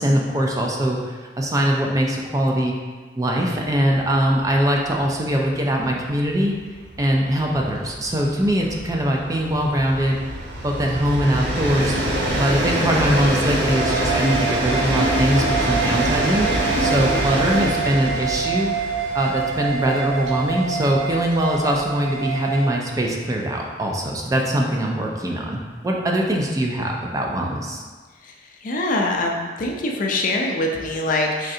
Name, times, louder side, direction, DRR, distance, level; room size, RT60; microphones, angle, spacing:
voice 1, 0.0-2.7 3.2-6.6 7.0-10.2 10.6-11.9 12.4-18.8 19.1-27.8, right 1 dB, 20° right, 0 dB, 0.3 m, -22 dB
Train, 3.9-4.0 4.4-4.5 4.7-22.2, right 1 dB, 80° right, 0.6 m, -26 dB
sound 1, 13.6-22.7, right 6 dB, ahead, 1.1 m, -27 dB
voice 2, 28.6-31.5, left 2 dB, 50° left, 1 dB, 0.4 m, -23 dB
3.7 x 3.2 x 2.6 m, 1.4 s
head